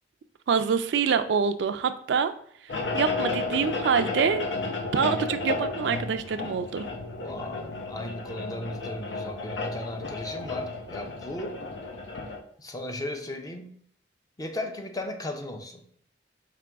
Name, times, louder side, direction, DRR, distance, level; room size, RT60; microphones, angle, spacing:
voice 1, 0.5-2.3 2.9-4.4 4.9-6.9, right 6 dB, 70° right, 10 dB, 0.3 m, -25 dB
sound 1, 2.7-12.4, left 3 dB, 75° left, 0.8 m, -33 dB
voice 2, 7.2-11.6 12.6-13.7 14.4-15.8, left 1 dB, 20° left, 5 dB, 0.5 m, -36 dB
5.0 x 3.0 x 3.4 m, 0.63 s
head